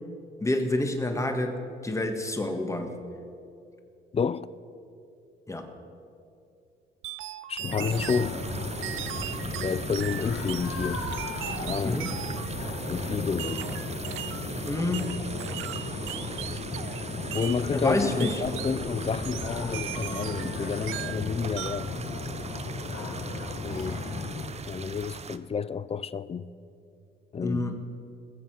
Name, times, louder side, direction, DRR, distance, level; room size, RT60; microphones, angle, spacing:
voice 1, 0.4-2.9 5.5-5.7 11.8-12.2 14.6-15.2 17.7-18.4 27.4-27.7, left 1 dB, 15° left, 1.7 m, -28 dB
voice 2, 4.1-4.5 7.5-8.4 9.6-11.1 11.6-12.0 12.9-13.8 15.5-15.7 17.2-21.9 23.6-24.0 24.7-26.5 27.3-27.7, left 6 dB, 30° left, 0.5 m, -30 dB
sound 1, 7.0-8.3 8.8-10.7 11.1-12.5 13.4-14.5 14.9-17.0 17.3-17.6 18.2-18.8 19.2-20.6 20.9-21.2 21.6-21.9, right 13 dB, 90° right, 0.6 m, -38 dB
sound 2, 7.6-24.5, left 3 dB, 65° left, 2.1 m, -35 dB
sound 3, 7.9-25.4, right 5 dB, 35° right, 0.7 m, -40 dB
21.0 x 7.4 x 5.8 m
cardioid pair, 90°, 20 cm